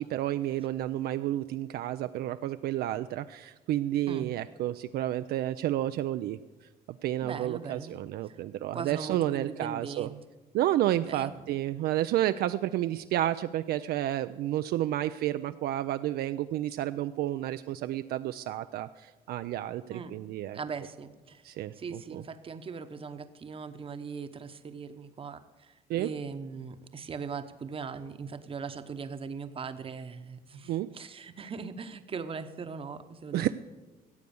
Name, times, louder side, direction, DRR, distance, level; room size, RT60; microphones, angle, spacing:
voice 1, 0.0-6.4 6.9-10.1 10.5-20.6 21.4-21.7 22.1-22.2 25.9-26.1 30.7-30.9 33.3-33.5, right 13 dB, 70° right, 10 dB, 0.4 m, -30 dB
voice 2, 7.2-8.0 8.2-8.4 8.7-10.2 11.1-11.6 19.9-20.1 20.5-21.4 21.7-33.5, right 5 dB, 35° right, 10 dB, 0.9 m, -40 dB
14.5 x 8.1 x 7.0 m, 1.2 s
cardioid pair, 110°, 17 cm